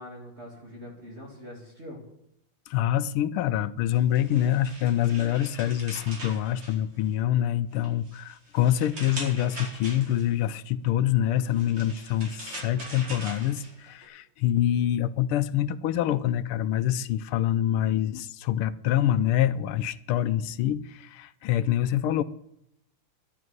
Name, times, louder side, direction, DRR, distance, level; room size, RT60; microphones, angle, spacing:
voice 1, 0.0-2.0, left 1 dB, 30° right, 2.6 m, -43 dB
voice 2, 2.7-22.2, left 11 dB, 80° left, 1.5 m, -26 dB
sound 1, 3.9-7.3 7.7-10.4 11.3-14.1, right 1 dB, 75° right, 5.4 m, -42 dB
12.0 x 7.7 x 9.5 m
omnidirectional pair, 2.4 m